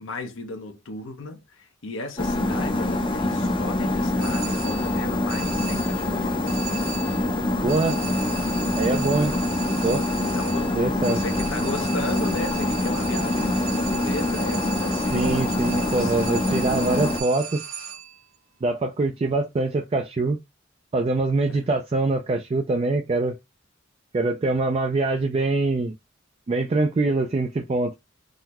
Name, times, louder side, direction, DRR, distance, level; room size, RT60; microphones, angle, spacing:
voice 1, 0.0-6.6 10.2-16.3 21.5-21.6, left 2 dB, 75° left, 0.7 m, -35 dB
sound 1, 2.2-17.2, left 1 dB, 25° left, 0.5 m, -25 dB
sound 2, 4.2-5.0 5.3-6.1 6.5-7.3 7.7-18.2, right 7 dB, 90° right, 0.8 m, -37 dB
voice 2, 7.6-8.0 8.7-9.4 9.8-10.0 10.8-11.2 15.1-17.6 18.6-20.4 20.9-23.3 24.1-25.9 26.5-27.9, right 3 dB, 30° right, 0.3 m, -24 dB
3.8 x 2.1 x 2.9 m
head